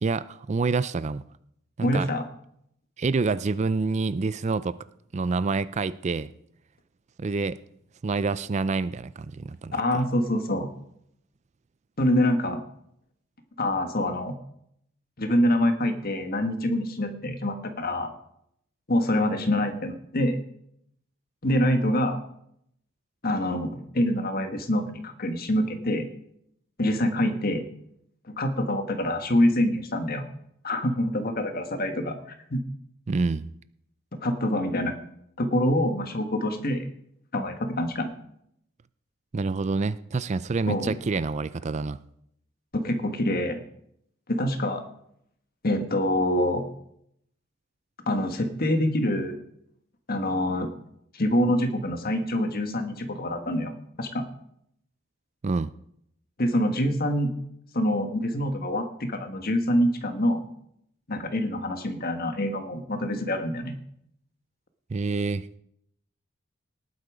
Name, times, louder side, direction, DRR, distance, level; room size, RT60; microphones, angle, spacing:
voice 1, 0.0-1.2 1.8-2.1 3.0-4.8 5.1-6.3 7.2-7.6 8.0-9.8 33.1-33.5 39.3-42.0 55.4-55.7 64.9-65.6, right 4 dB, 35° right, 16 dB, 0.4 m, -27 dB
voice 2, 1.8-2.2 9.7-10.7 12.0-12.6 13.6-14.4 15.2-18.1 18.9-20.4 21.4-22.2 23.2-26.1 26.8-27.6 28.3-30.2 30.6-32.6 34.2-34.9 35.4-36.9 37.3-38.1 40.7-40.9 42.7-43.6 44.3-44.8 45.6-46.7 48.1-49.4 50.1-50.7 51.1-53.7 54.0-54.3 56.4-57.3 57.7-60.4 61.1-63.8, left 1 dB, 50° left, 7 dB, 1.6 m, -25 dB
18.5 x 8.4 x 5.0 m, 0.74 s
head